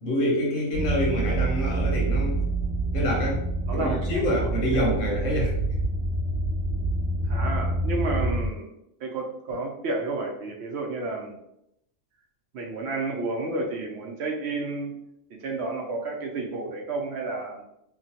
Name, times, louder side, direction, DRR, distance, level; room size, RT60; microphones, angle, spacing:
voice 1, 0.0-2.4 2.9-5.5, left 1 dB, 85° left, -2 dB, 1.3 m, -27 dB
sound 1, 0.7-8.5, right 2 dB, 60° left, 1.5 m, -27 dB
voice 2, 3.7-4.5 7.3-8.7 9.0-11.4 12.5-14.9 15.3-17.6, right 3 dB, 65° right, 1 dB, 0.8 m, -31 dB
3.1 x 2.1 x 2.8 m, 0.79 s
omnidirectional pair, 1.3 m